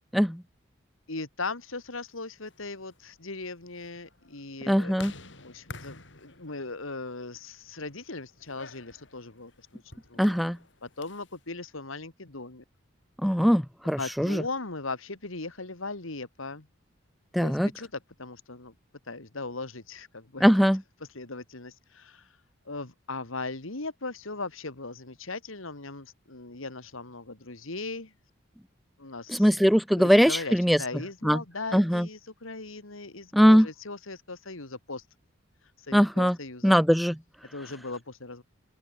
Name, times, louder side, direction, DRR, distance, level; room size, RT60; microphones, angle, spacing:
voice 1, 1.1-10.2 10.8-12.6 13.2-13.5 14.0-16.7 17.4-18.7 19.0-20.7 21.0-22.4 22.7-28.1 29.0-29.5 30.0-35.1 35.6-36.7 37.5-38.4, left 3 dB, 80° left, 2.4 m, -39 dB
sound 1, 2.3-11.4, left 3 dB, 60° left, 4.9 m, -50 dB
voice 2, 4.7-5.1 10.2-10.6 13.2-14.4 17.3-17.7 20.4-20.8 29.3-30.8 31.2-31.4 31.7-32.1 33.3-33.7 35.9-36.4 36.6-37.2, equal, ahead, 0.3 m, -21 dB
open air
head